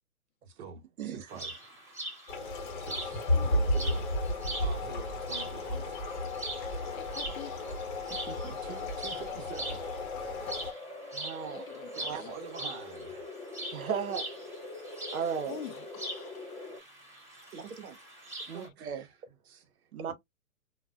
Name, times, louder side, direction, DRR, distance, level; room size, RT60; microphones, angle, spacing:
voice 1, 0.4-1.5 2.8-4.1 4.6-6.0 8.6-9.8 11.9-13.3 18.5-20.1, right 6 dB, 45° right, 0.9 m, -47 dB
sound 1, 1.3-18.7, right 2 dB, 5° right, 0.8 m, -43 dB
sound 2, 2.3-10.7, left 1 dB, 35° left, 0.8 m, -33 dB
voice 2, 3.3-3.8 6.9-7.6 10.7-11.9 12.2-12.3 15.5-16.3, left 10 dB, 75° left, 0.5 m, -46 dB
voice 3, 8.3-8.6 11.1-11.7 12.0-12.2 13.7-14.3 15.1-15.6 17.5-18.0 18.5-19.0 19.9-20.1, right 7 dB, 75° right, 0.8 m, -36 dB
sound 3, 8.7-16.8, left 2 dB, 15° left, 0.3 m, -44 dB
3.2 x 2.1 x 2.3 m
hypercardioid pair, 130°, 42 cm